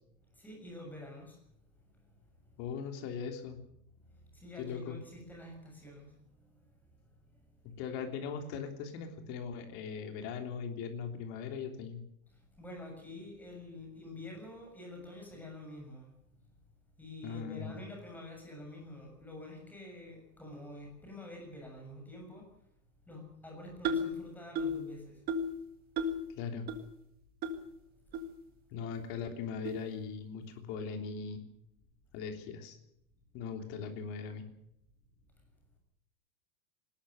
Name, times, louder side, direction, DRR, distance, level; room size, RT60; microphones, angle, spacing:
voice 1, 0.3-1.4 4.3-6.1 12.6-16.1 17.0-22.5 23.1-25.2, left 1 dB, 5° left, 1 dB, 6.9 m, -47 dB
voice 2, 2.6-3.6 4.6-5.0 7.6-12.0 17.2-17.8 26.4-26.7 28.7-31.4 32.1-32.8 33.3-34.4, left 6 dB, 30° left, 5 dB, 3.4 m, -39 dB
sound 1, 23.8-24.2 24.6-24.8 25.3-25.6 26.0-26.2 26.7-26.8 27.4-27.5 28.1-28.2 28.9-29.0 29.6-29.8, equal, 20° right, 2.0 m, -33 dB
21.0 x 19.5 x 6.6 m, 0.76 s
supercardioid pair, 175°, 41 cm